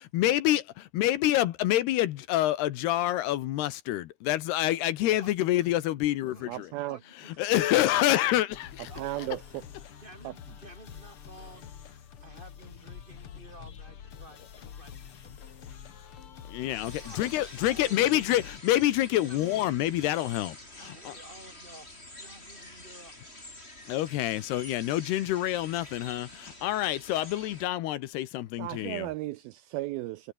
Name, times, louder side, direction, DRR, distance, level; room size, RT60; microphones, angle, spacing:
voice 1, 0.0-6.7 7.2-8.9 16.5-21.2 23.9-29.1, left 14 dB, 75° left, 3.1 m, -27 dB
voice 2, 5.2-5.7 6.3-6.5 6.9-8.0 8.9-9.3 10.0-11.7 12.2-14.9 15.2-15.4 17.0-17.2 17.6-18.3 19.2-19.5 20.8-23.1, right 1 dB, 10° right, 3.7 m, -51 dB
voice 3, 6.5-7.0 8.9-9.6 10.2-10.3 28.6-30.3, right 17 dB, 80° right, 2.3 m, -35 dB
sound 1, 8.5-18.6, left 8 dB, 50° left, 1.8 m, -47 dB
sound 2, 16.7-27.7, left 1 dB, 15° left, 7.1 m, -47 dB
omnidirectional pair, 4.8 m